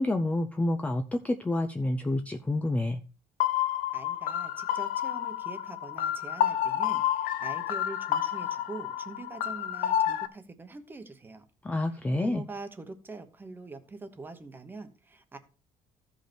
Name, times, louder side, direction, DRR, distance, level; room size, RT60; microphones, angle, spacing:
voice 1, 0.0-3.0 11.6-12.4, left 1 dB, 10° left, 0.5 m, -28 dB
sound 1, 3.4-10.3, left 11 dB, 90° left, 0.9 m, -29 dB
voice 2, 3.9-11.4 12.2-15.4, right 3 dB, 15° right, 1.0 m, -44 dB
14.5 x 5.3 x 4.4 m
cardioid pair, 175°, 14 cm